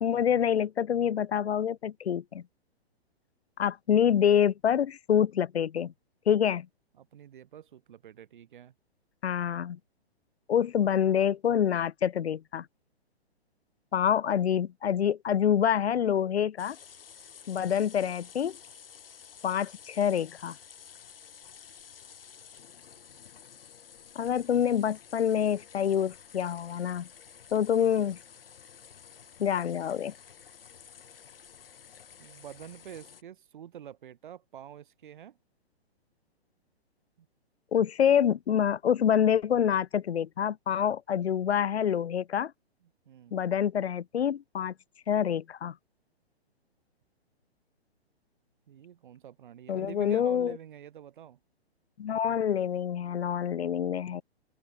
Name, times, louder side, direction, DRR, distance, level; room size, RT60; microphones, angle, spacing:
voice 1, 0.0-2.4 3.6-5.9 6.3-6.7 9.2-9.8 10.5-12.7 13.9-16.8 17.5-18.6 19.4-20.6 24.2-27.1 27.5-28.2 29.4-30.1 37.7-42.5 43.3-44.7 45.1-45.7 49.7-50.6 52.0-54.2, left 9 dB, 75° left, 0.5 m, -26 dB
voice 2, 7.0-8.7 32.2-35.4 37.2-37.3 43.1-43.4 48.7-51.4, right 10 dB, 50° right, 2.4 m, -47 dB
sound 1, 16.6-33.2, left 7 dB, 60° left, 2.0 m, -52 dB
open air
figure-of-eight pair, 120°, 32 cm